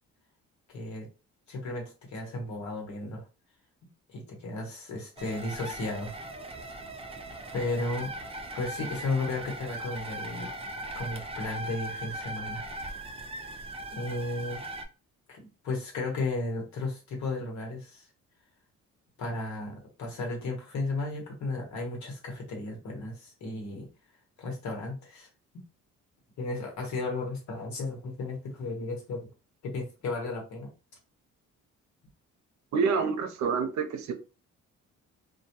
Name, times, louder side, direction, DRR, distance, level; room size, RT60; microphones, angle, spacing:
voice 1, 0.7-1.1 1.5-3.2 4.1-6.2 7.5-8.1 8.5-10.5 10.9-12.6 13.9-14.6 15.3-18.0 19.2-23.9 24.4-25.3 26.4-29.3 29.6-30.7, left 2 dB, 65° left, 1.1 m, -34 dB
sound 1, 5.2-14.8, right 1 dB, 20° right, 0.4 m, -39 dB
voice 2, 32.7-34.1, right 5 dB, 70° right, 0.6 m, -27 dB
2.2 x 2.2 x 2.8 m
cardioid pair, 90°, 30 cm